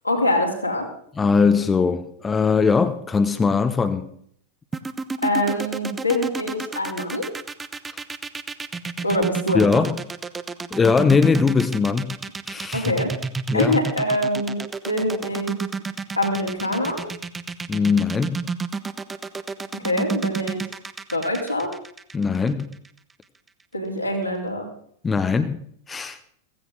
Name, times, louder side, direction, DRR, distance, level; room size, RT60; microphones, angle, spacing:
voice 1, 0.0-0.9 5.2-7.3 9.0-9.8 12.7-13.1 13.5-15.6 16.1-17.1 19.8-20.6 21.1-21.7 23.7-24.7, left 1 dB, 85° left, -1 dB, 3.6 m, -24 dB
voice 2, 1.2-4.1 7.9-8.0 9.5-10.0 10.7-12.1 12.5-12.9 13.5-13.8 17.7-18.5 22.1-22.8 25.0-26.2, left 5 dB, 15° left, 9 dB, 0.9 m, -20 dB
sound 1, 4.7-22.9, right 4 dB, 15° right, 0.7 m, -30 dB
16.0 x 15.5 x 3.9 m, 0.64 s
figure-of-eight pair, 90°, 0 cm